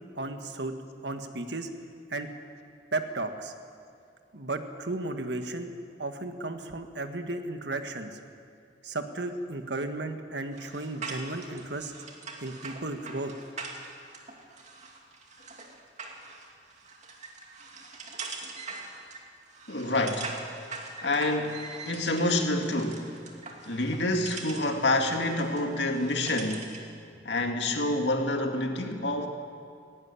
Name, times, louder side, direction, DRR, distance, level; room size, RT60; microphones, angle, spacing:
voice 1, 0.1-0.7 1.0-1.7 2.1-2.3 2.9-3.5 4.3-5.7 6.0-8.2 8.8-11.9 12.4-13.3, right 2 dB, 70° right, 7 dB, 1.6 m, -34 dB
sound 1, 10.5-26.9, right 4 dB, 45° right, 2.5 m, -43 dB
voice 2, 19.7-20.3 21.0-23.1 23.6-26.7 27.2-29.3, left 2 dB, 80° left, 4 dB, 2.2 m, -27 dB
17.5 x 17.0 x 9.9 m, 2.4 s
head